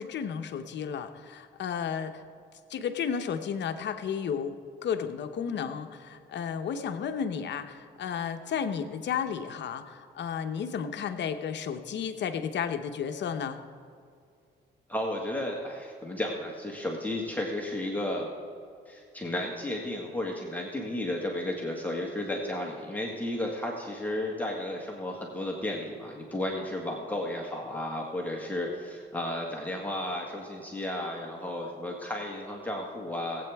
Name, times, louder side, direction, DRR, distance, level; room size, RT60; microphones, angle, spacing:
voice 1, 0.0-2.2 2.7-4.6 4.8-13.6, left 7 dB, 65° left, 7 dB, 0.8 m, -33 dB
voice 2, 14.9-18.3 18.9-33.5, left 1 dB, 10° left, -2 dB, 1.7 m, -33 dB
19.5 x 8.5 x 3.5 m, 2.4 s
cardioid pair, 90°, 20 cm